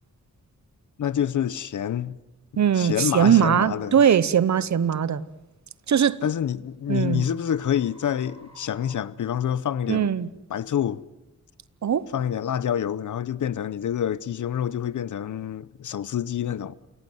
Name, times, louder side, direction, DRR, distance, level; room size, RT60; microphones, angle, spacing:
voice 1, 1.0-2.2 2.7-4.0 6.2-10.1 10.5-11.0 12.1-16.7, left 9 dB, 85° left, 0.8 m, -27 dB
sound 1, 2.5-2.7 5.4-9.8, left 1 dB, 20° right, 7.2 m, -55 dB
voice 2, 2.6-5.2 5.9-6.2 6.9-7.3 9.9-10.3 11.8-12.0, right 8 dB, 70° right, 0.9 m, -20 dB
27.5 x 17.5 x 9.3 m
wide cardioid pair, 140°, 30 cm